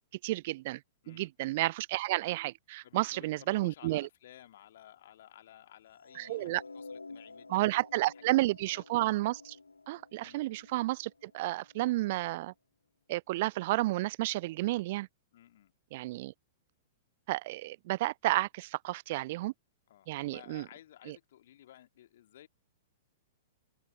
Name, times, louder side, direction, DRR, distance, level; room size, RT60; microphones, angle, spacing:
voice 1, 0.2-0.8 1.1-4.1 6.2-6.6 7.5-9.6 9.9-12.5 13.1-15.1 15.9-16.3 17.3-19.5 20.1-20.6 21.1-21.2, right 18 dB, 45° right, 0.5 m, -31 dB
voice 2, 2.8-7.7 8.1-8.3 8.6-8.8 10.2-10.4 15.3-15.7 19.9-22.5, left 12 dB, 55° left, 2.1 m, -55 dB
sound 1, 5.9-12.2, left 3 dB, 80° left, 1.5 m, -51 dB
open air
figure-of-eight pair, 105°, 0 cm